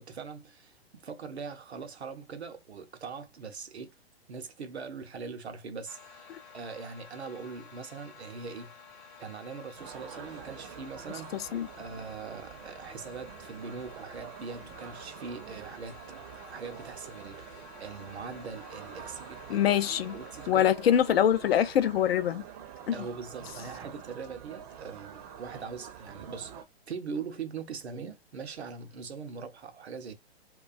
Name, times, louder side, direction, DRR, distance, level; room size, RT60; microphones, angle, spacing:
voice 1, 0.0-3.9 4.3-8.7 9.2-11.4 11.8-16.0 16.4-19.7 20.1-20.8 22.9-26.5 26.9-30.1, right 5 dB, 85° right, 0.6 m, -41 dB
sound 1, 5.9-20.5, left 6 dB, 20° left, 0.6 m, -52 dB
sound 2, 9.8-26.6, right 8 dB, 35° right, 0.5 m, -47 dB
voice 2, 11.3-11.7 19.5-20.2 20.5-22.4 22.9-23.0, left 10 dB, 70° left, 0.4 m, -24 dB
2.3 x 2.2 x 2.4 m
figure-of-eight pair, 120°, 32 cm